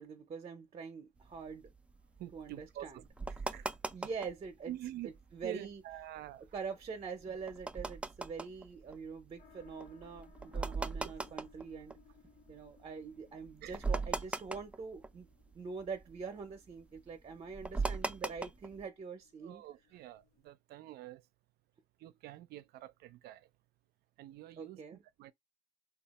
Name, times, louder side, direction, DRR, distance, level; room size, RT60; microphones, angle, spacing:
voice 1, 0.0-1.7 2.3-3.0 3.9-4.7 5.0-5.8 6.5-12.0 12.5-15.3 15.5-19.6 24.6-25.0, right 5 dB, 35° right, 0.7 m, -44 dB
sound 1, 1.2-4.5 4.9-5.0 5.1-5.5 5.9-12.6 13.1-13.2 13.4-15.5 15.8-18.8, right 3 dB, 5° right, 0.4 m, -39 dB
voice 2, 2.2-3.0 3.3-3.7 4.7-5.1 5.4-6.4 10.5-10.7 11.0-11.1 13.6-13.8 19.4-21.2 22.0-23.5 24.2-25.3, right 14 dB, 70° right, 0.4 m, -47 dB
sound 2, 9.4-20.5, left 8 dB, 70° left, 1.2 m, -65 dB
2.7 x 2.4 x 4.1 m
cardioid pair, 110°, 17 cm